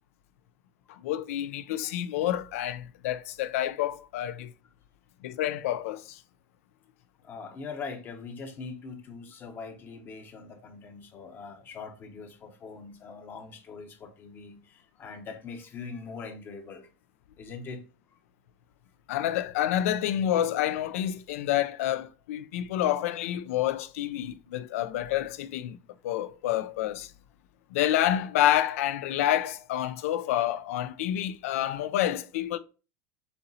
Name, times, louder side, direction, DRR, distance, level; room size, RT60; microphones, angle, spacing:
voice 1, 1.0-4.5 5.2-6.2 19.1-25.8 26.0-27.1 27.7-32.6, left 12 dB, 85° left, 0.4 m, -28 dB
voice 2, 7.2-16.9 17.4-17.8, left 4 dB, 30° left, 0.7 m, -42 dB
6.8 x 2.9 x 2.6 m
supercardioid pair, 150°, 7 cm